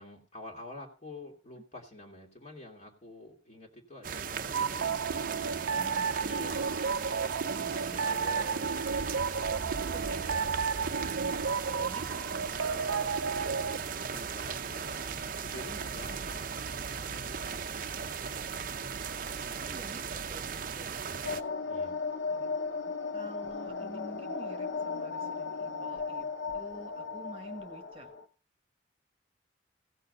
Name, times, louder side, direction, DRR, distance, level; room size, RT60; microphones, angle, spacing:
voice 1, 0.0-5.1 5.6-7.0 7.4-8.9 9.7-10.5 12.7-13.1 14.1-16.5 16.9-17.5 18.6-18.9 21.6-22.0, left 1 dB, 40° left, -1 dB, 2.3 m, -48 dB
sound 1, 4.0-21.4, right 6 dB, 45° right, 0.7 m, -37 dB
sound 2, 4.5-13.8, right 5 dB, 85° right, 0.6 m, -32 dB
voice 2, 5.7-6.1 7.4-8.0 9.8-10.5 10.9-13.7 16.9-17.4 18.1-18.3 19.6-21.1 22.3-22.5 23.1-26.3 26.5-28.1, right 1 dB, 30° right, 5 dB, 1.2 m, -49 dB
sound 3, 21.2-28.2, left 4 dB, 80° left, 1.1 m, -36 dB
16.0 x 6.6 x 5.4 m, 0.36 s
head